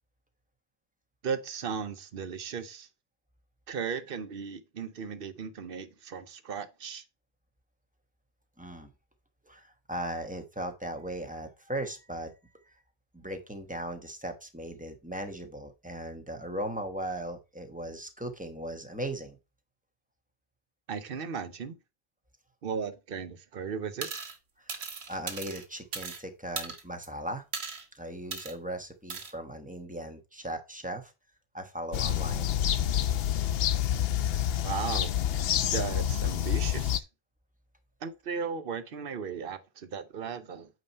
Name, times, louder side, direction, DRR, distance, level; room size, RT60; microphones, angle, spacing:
voice 1, 1.2-2.9 3.7-7.0 20.9-21.8 22.6-24.1 34.6-35.1 35.7-37.0 38.0-40.7, right 6 dB, 65° right, 1.0 m, -36 dB
voice 2, 8.6-8.9 9.4-12.3 13.1-19.4 24.7-27.4 27.9-31.1 31.5-32.5, right 1 dB, 10° right, 1.1 m, -38 dB
sound 1, 24.0-24.4 24.7-26.2 26.6-27.1 27.5-27.8 28.3-28.5 29.1-29.3, right 5 dB, 80° right, 1.4 m, -37 dB
sound 2, 31.9-37.0, left 10 dB, 75° left, 0.8 m, -28 dB
8.6 x 3.1 x 5.3 m
omnidirectional pair, 1.1 m